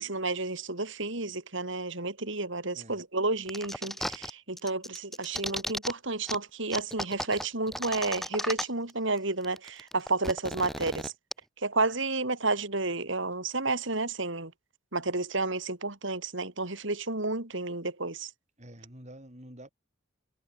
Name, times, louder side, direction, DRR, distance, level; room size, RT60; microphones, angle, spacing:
voice 1, 0.0-11.1 11.6-14.5 14.9-18.3, right 3 dB, 65° right, 3.6 m, -31 dB
sound 1, 3.5-4.3 4.6-5.9 6.3-6.4 6.7-8.9 9.2-9.3 9.4-11.3, equal, ahead, 0.5 m, -35 dB
voice 2, 18.6-19.7, right 1 dB, 35° right, 7.1 m, -48 dB
head